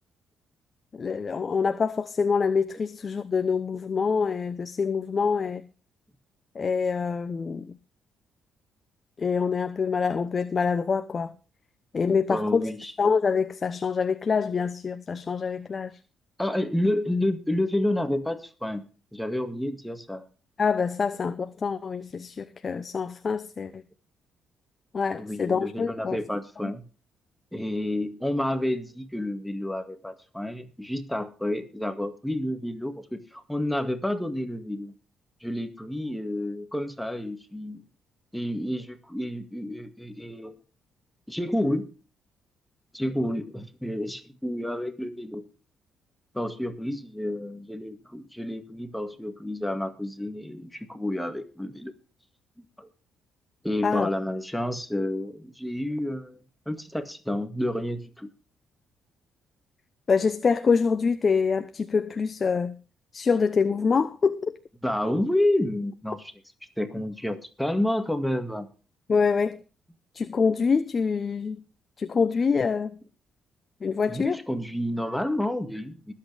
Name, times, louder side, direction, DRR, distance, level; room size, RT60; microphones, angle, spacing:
voice 1, 0.9-5.6 6.5-7.7 9.2-11.3 11.9-15.9 20.6-23.8 24.9-26.2 53.8-54.1 60.1-62.7 63.1-64.5 69.1-69.6 70.1-71.6 72.0-73.0 73.8-74.4, left 5 dB, 40° left, 0.8 m, -25 dB
voice 2, 12.3-12.9 16.4-18.9 19.1-20.3 25.2-26.8 27.5-34.9 35.4-37.8 38.3-40.6 41.3-41.9 42.9-45.5 46.3-51.9 52.8-52.9 53.6-58.3 64.8-66.3 66.8-68.7 74.1-76.1, left 1 dB, 5° left, 2.0 m, -30 dB
21.0 x 8.7 x 3.4 m
cardioid pair, 90°, 0 cm